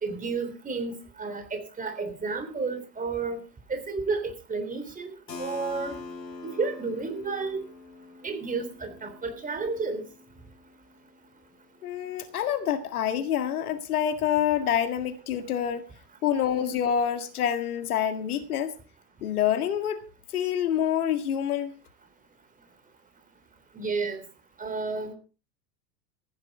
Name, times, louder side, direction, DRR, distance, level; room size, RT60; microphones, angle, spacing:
voice 1, 0.0-3.4 3.7-5.9 6.4-7.6 8.2-10.0 23.7-24.2 24.6-25.1, right 4 dB, 15° right, 7 dB, 3.4 m, -31 dB
Keyboard (musical), 5.3-10.8, left 3 dB, 75° left, 2.3 m, -44 dB
voice 2, 11.8-15.9 16.2-18.7 19.2-20.0 20.3-21.7, left 9 dB, 60° left, 10 dB, 1.9 m, -27 dB
15.0 x 11.0 x 4.8 m, 0.34 s
figure-of-eight pair, 85°, 50 cm